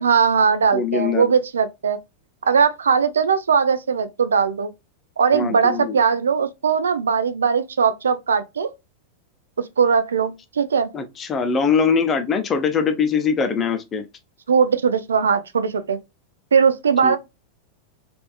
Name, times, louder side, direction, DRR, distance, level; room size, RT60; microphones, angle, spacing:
voice 1, 0.0-2.0 2.4-4.7 5.2-8.7 9.6-10.9 14.5-16.0 16.5-17.2, right 6 dB, 70° right, 0.3 m, -19 dB
voice 2, 0.7-1.3 5.3-6.0 10.9-14.0 17.0-17.2, left 5 dB, 25° left, 0.5 m, -22 dB
3.3 x 2.5 x 2.2 m
figure-of-eight pair, 90°, 0 cm